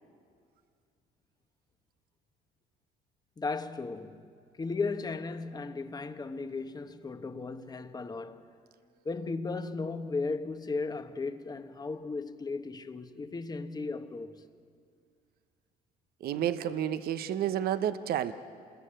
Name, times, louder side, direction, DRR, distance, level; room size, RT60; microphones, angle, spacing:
voice 1, 3.4-8.4 9.0-14.4, left 4 dB, 25° left, 1.2 m, -36 dB
voice 2, 16.2-18.3, right 10 dB, 65° right, 1.0 m, -30 dB
28.0 x 21.0 x 9.0 m
cardioid pair, 110°, 17 cm